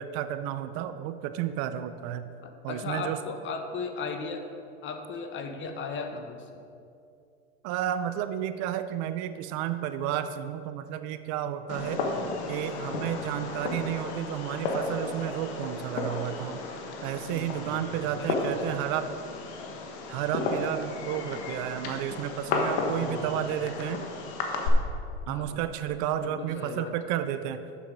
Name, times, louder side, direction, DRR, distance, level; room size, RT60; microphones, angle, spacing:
voice 1, 0.0-2.3 2.6-3.2 7.6-12.0 12.5-16.6 17.0-19.1 20.1-24.0 25.3-27.7, right 11 dB, 55° right, 11 dB, 0.5 m, -32 dB
voice 2, 2.4-4.4 4.8-6.6 11.8-12.3 17.2-18.9 22.9-23.5 25.2-25.6 26.2-26.9, left 4 dB, 35° left, 5 dB, 0.9 m, -37 dB
Fireworks, 11.7-24.7, left 3 dB, 75° left, 1.4 m, -33 dB
7.3 x 6.9 x 5.1 m, 2.4 s
supercardioid pair, 110°, 33 cm